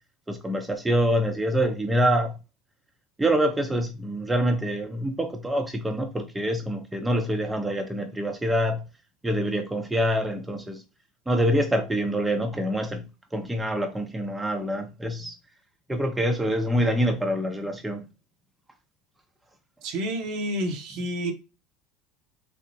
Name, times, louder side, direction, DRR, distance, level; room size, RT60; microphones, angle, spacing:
voice 1, 0.3-2.3 3.2-8.8 9.2-10.8 11.3-13.1 13.3-15.3 15.9-18.0, equal, 10° right, 0.6 m, -25 dB
voice 2, 19.8-21.3, equal, 65° right, 0.8 m, -29 dB
3.4 x 2.0 x 2.7 m
hypercardioid pair, 75°, 0 cm